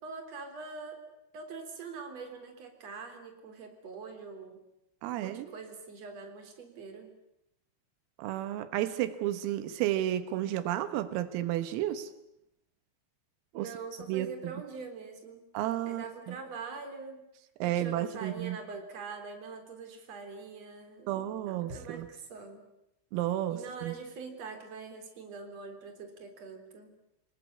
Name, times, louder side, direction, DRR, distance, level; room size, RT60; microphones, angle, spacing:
voice 1, 0.0-1.0 1.3-4.6 5.1-7.1 13.5-15.4 15.9-17.3 17.6-22.6 23.5-26.9, right 4 dB, 35° right, 6 dB, 4.2 m, -44 dB
voice 2, 5.0-5.5 8.2-12.1 13.6-13.7 14.1-14.3 15.5-16.4 17.6-18.6 21.1-22.1 23.1-23.9, right 13 dB, 85° right, 12 dB, 3.8 m, -32 dB
29.0 x 19.5 x 9.7 m, 0.84 s
omnidirectional pair, 5.9 m